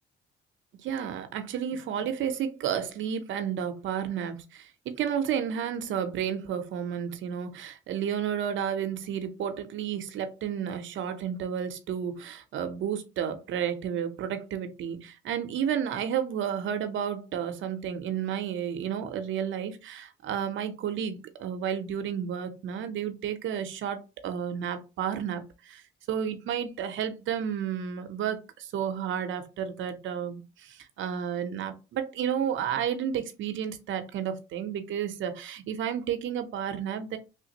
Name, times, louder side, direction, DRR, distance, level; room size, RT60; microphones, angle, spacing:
voice 1, 0.8-25.8 26.1-37.2, right 8 dB, 75° right, 0.6 m, -32 dB
3.3 x 2.5 x 2.8 m
cardioid pair, 90°, 20 cm